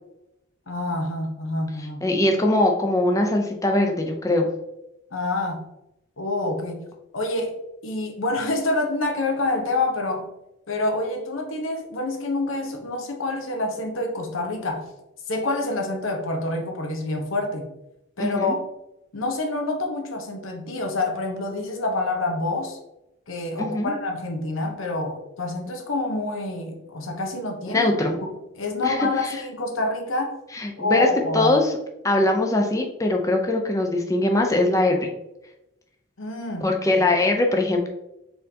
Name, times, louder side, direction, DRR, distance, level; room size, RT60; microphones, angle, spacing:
voice 1, 0.7-2.0 5.1-5.6 6.2-6.8 7.1-10.3 10.7-14.9 15.3-17.7 18.2-18.6 19.1-22.8 23.3-27.9 28.2-28.3 28.6-30.4 30.8-31.5 36.2-36.7, left 2 dB, 80° left, 3 dB, 0.8 m, -27 dB
voice 2, 2.0-4.5 18.2-18.6 23.6-23.9 27.7-28.2 28.8-29.4 30.5-31.7 32.0-35.1 36.6-37.9, left 2 dB, 15° left, 2 dB, 0.5 m, -21 dB
4.3 x 3.7 x 2.8 m, 0.88 s
head